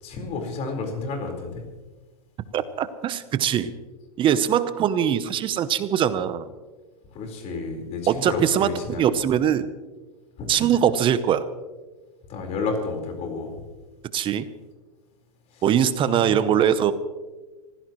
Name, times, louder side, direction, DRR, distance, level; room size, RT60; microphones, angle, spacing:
voice 1, 0.0-1.6 7.1-9.1 10.4-10.7 12.3-13.5 15.5-15.6 16.0-16.5, left 4 dB, 35° left, 3 dB, 4.5 m, -31 dB
voice 2, 2.5-3.7 4.2-6.5 8.1-8.7 9.0-9.7 10.5-11.5 14.1-14.5 15.6-16.9, right 9 dB, 25° right, 13 dB, 0.8 m, -22 dB
24.5 x 16.0 x 3.1 m, 1.2 s
hypercardioid pair, 125°, 19 cm